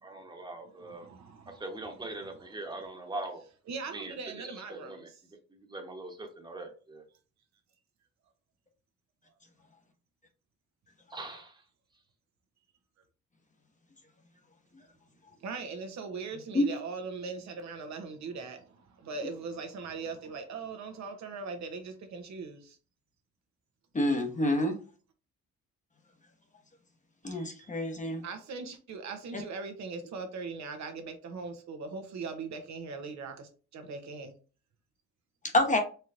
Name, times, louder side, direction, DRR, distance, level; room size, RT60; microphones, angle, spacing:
voice 1, 0.0-1.1 1.5-3.4 3.9-5.1 5.7-7.0 11.1-11.6, right 2 dB, 15° right, 1.2 m, -41 dB
voice 2, 0.6-2.9 3.7-5.2 15.4-22.8 27.2-27.7 28.2-34.3, right 4 dB, 65° right, 1.0 m, -41 dB
voice 3, 23.9-24.8 27.2-28.2 35.5-35.8, left 1 dB, 25° left, 1.0 m, -27 dB
4.4 x 3.0 x 2.6 m
cardioid pair, 90°, 30 cm